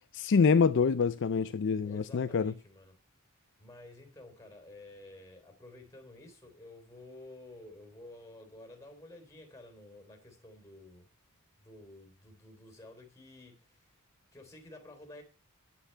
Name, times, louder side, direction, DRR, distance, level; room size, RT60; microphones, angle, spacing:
voice 1, 0.1-2.5, left 5 dB, 55° left, 0.4 m, -26 dB
voice 2, 1.8-3.0 3.6-11.1 11.4-13.9 14.3-15.2, left 2 dB, 15° left, 3.4 m, -52 dB
9.7 x 8.9 x 5.6 m
head